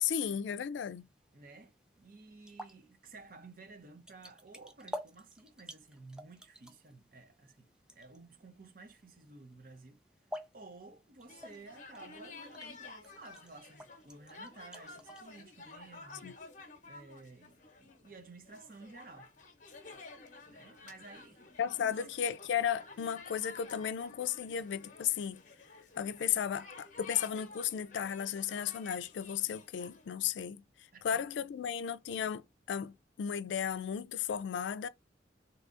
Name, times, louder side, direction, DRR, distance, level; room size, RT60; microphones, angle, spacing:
voice 1, 0.0-1.1 16.2-16.3 21.6-25.4 26.0-30.6 31.0-32.4 32.7-32.9 33.2-34.9, left 8 dB, 85° left, 0.3 m, -34 dB
sound 1, 0.8-15.2, left 1 dB, 5° right, 0.4 m, -51 dB
voice 2, 1.3-10.0 10.5-16.4 16.9-19.3 20.5-22.0 30.9-31.2, right 3 dB, 50° right, 0.7 m, -54 dB
sound 2, 11.3-30.1, left 3 dB, 45° left, 0.8 m, -52 dB
3.6 x 2.7 x 2.5 m
head